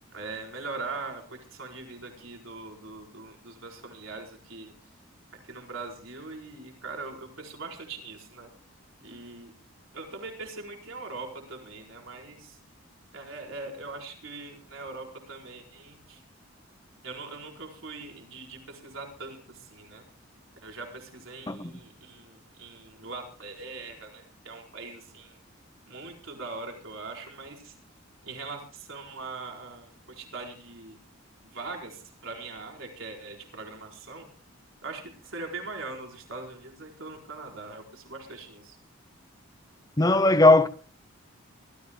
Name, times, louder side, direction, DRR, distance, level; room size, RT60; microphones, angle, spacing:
voice 1, 0.1-4.7 5.5-8.5 9.0-9.5 9.9-12.6 13.1-16.2 17.0-20.0 20.6-25.4 25.9-27.7 28.2-31.0 31.5-34.3 34.8-38.8, right 3 dB, 70° right, 4.3 m, -41 dB
voice 2, 40.0-40.7, left 2 dB, 15° left, 0.7 m, -18 dB
24.5 x 14.5 x 2.2 m
head